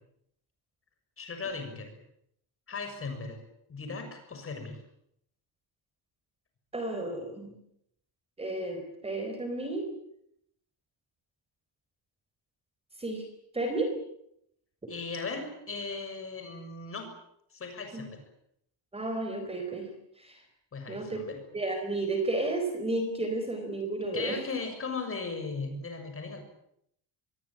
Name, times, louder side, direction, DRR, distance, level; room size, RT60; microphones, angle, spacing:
voice 1, 1.2-1.9 2.7-3.4 3.7-4.8 14.9-17.1 17.5-18.2 20.7-21.4 24.1-26.4, left 4 dB, 25° left, 6 dB, 6.6 m, -37 dB
voice 2, 6.7-7.6 8.4-9.9 13.0-13.2 13.5-14.0 14.8-14.9 17.9-18.1 18.9-19.9 20.2-20.4 20.9-21.2 21.5-24.4, right 2 dB, 10° right, 5 dB, 4.3 m, -32 dB
26.5 x 22.0 x 8.9 m, 0.74 s
cardioid pair, 180°, 49 cm